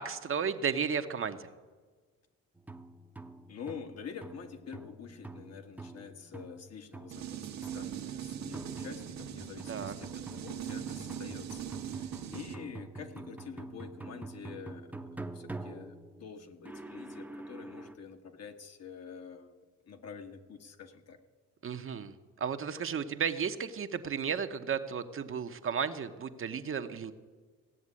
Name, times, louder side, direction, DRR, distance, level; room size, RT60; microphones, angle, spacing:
voice 1, 0.0-1.5 9.7-9.9 21.6-27.1, right 6 dB, 45° right, 8 dB, 0.9 m, -34 dB
sound 1, 2.6-18.0, right 2 dB, 5° right, 0.8 m, -46 dB
voice 2, 3.5-14.9 15.3-19.5 19.9-21.2, left 6 dB, 55° left, 6 dB, 1.5 m, -47 dB
sound 2, 7.1-12.5, right 10 dB, 65° right, 1.1 m, -40 dB
16.5 x 7.2 x 9.8 m, 1.4 s
cardioid pair, 90°, 30 cm